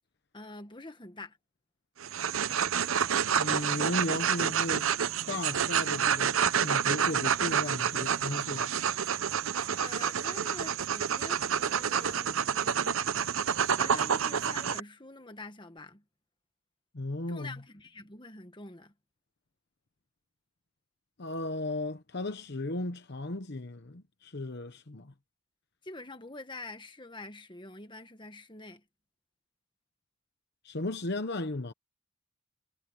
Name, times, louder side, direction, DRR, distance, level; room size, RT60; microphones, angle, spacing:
voice 1, 0.3-1.4 9.7-13.2 13.6-16.0 17.3-18.9 25.8-28.8, left 2 dB, 20° left, 1.5 m, -46 dB
sound 1, 2.0-14.8, right 7 dB, 70° right, 0.7 m, -28 dB
voice 2, 3.4-4.9 5.3-8.7 16.9-17.6 21.2-25.1 30.6-31.7, left 2 dB, 50° left, 1.0 m, -35 dB
head